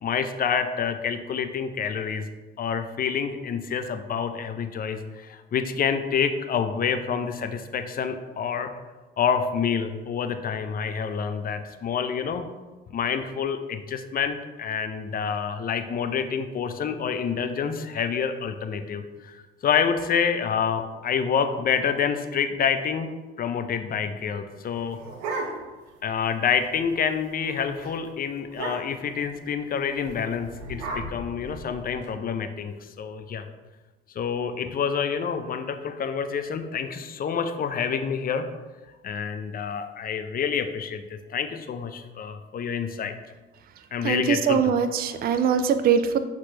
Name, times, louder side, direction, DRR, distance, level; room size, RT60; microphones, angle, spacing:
voice 1, 0.0-2.2 2.6-8.7 9.2-12.5 12.9-19.4 19.6-23.1 23.4-25.0 26.0-33.5 34.2-38.5 39.0-43.1 43.9-44.7, left 7 dB, 30° left, 8 dB, 0.4 m, -27 dB
sound 1, 24.6-25.9 26.3-26.4 26.6-27.0 27.3-27.5 27.8-27.9 28.5-29.1 30.0-32.1, right 2 dB, 70° right, 0.9 m, -35 dB
voice 2, 44.0-46.2, right 7 dB, 30° right, 10 dB, 0.4 m, -22 dB
5.9 x 2.9 x 2.8 m, 1.2 s
hypercardioid pair, 55°, 30 cm